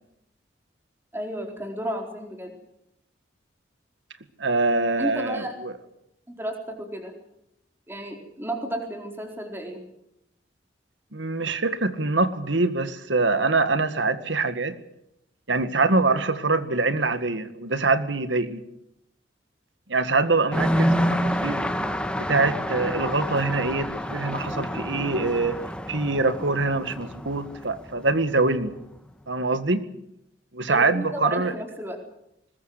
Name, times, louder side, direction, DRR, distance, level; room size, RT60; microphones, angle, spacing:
voice 1, 1.1-2.6 5.0-5.5 6.4-7.1 7.9-9.8 20.5-20.7 30.7-32.0, right 1 dB, 15° right, 3 dB, 4.3 m, -33 dB
voice 2, 4.4-5.7 11.1-14.8 15.5-18.6 19.9-21.7 22.2-25.6 25.9-28.7 29.3-29.8 30.5-31.5, right 3 dB, 85° right, 11 dB, 1.8 m, -24 dB
sound 1, 20.5-28.8, equal, 5° left, 1.4 m, -28 dB
21.0 x 20.5 x 8.0 m, 0.80 s
head